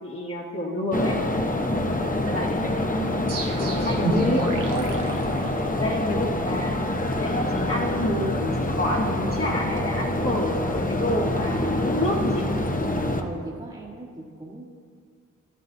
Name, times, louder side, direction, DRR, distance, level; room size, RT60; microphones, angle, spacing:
voice 1, 0.0-1.2 2.2-2.9 3.5-5.0 5.7-12.5, left 1 dB, 45° left, -3 dB, 1.4 m, -28 dB
sound 1, 0.9-13.2, left 1 dB, 25° left, 0.9 m, -26 dB
voice 2, 1.5-1.9 13.2-14.7, right 2 dB, 20° right, -5 dB, 1.4 m, -40 dB
sound 2, 3.3-6.1, right 3 dB, 85° right, 1.1 m, -31 dB
12.5 x 11.5 x 2.7 m, 2.1 s
cardioid pair, 45°, 32 cm